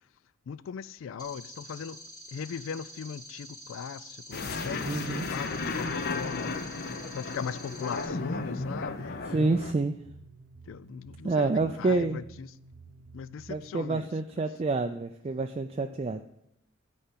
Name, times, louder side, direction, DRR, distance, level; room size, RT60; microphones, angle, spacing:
voice 1, 0.5-2.0 2.3-9.7 10.6-12.5 13.1-14.1, left 7 dB, 80° left, 0.3 m, -39 dB
sound 1, 1.2-8.1, equal, 20° left, 1.4 m, -47 dB
sound 2, 4.3-9.7, left 3 dB, 50° left, 0.7 m, -34 dB
voice 2, 4.9-5.3 9.3-9.9 11.2-12.2 13.5-16.2, right 3 dB, 30° right, 0.3 m, -28 dB
sound 3, 8.4-13.7, right 4 dB, 75° right, 0.8 m, -52 dB
10.0 x 4.3 x 7.4 m
head